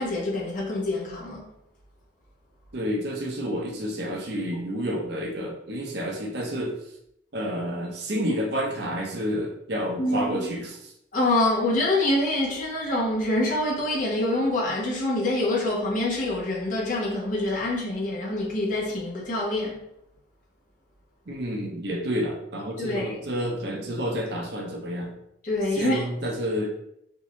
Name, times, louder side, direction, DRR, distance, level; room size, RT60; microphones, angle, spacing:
voice 1, 0.0-1.4 10.0-10.5 11.1-19.8 22.8-23.1 25.4-26.0, left 1 dB, 45° left, -4 dB, 1.1 m, -26 dB
voice 2, 2.7-6.8 7.3-10.9 21.3-25.1 25.7-26.7, equal, 60° right, 0 dB, 0.7 m, -29 dB
3.5 x 2.7 x 3.0 m, 0.77 s
head